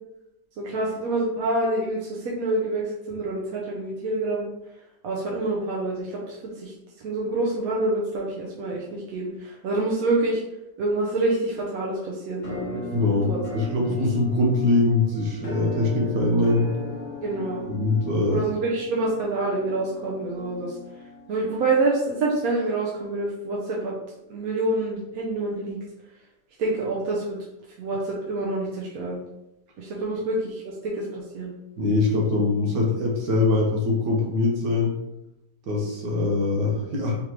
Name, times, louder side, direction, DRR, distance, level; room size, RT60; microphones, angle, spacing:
voice 1, 0.6-4.4 5.0-10.4 10.8-12.8 13.1-13.4 17.2-17.7 18.3-20.8 21.3-23.9 24.3-25.8 26.6-27.4 27.8-29.2 29.8-31.5, right 2 dB, 65° right, -4 dB, 1.0 m, -27 dB
Musical instrument, 12.4-22.2, left 2 dB, 45° left, 0.6 m, -37 dB
voice 2, 12.9-16.7 17.7-18.4 31.8-34.9 35.7-37.2, left 2 dB, 85° right, -1 dB, 1.5 m, -23 dB
3.6 x 3.4 x 2.9 m, 0.88 s
omnidirectional pair, 1.9 m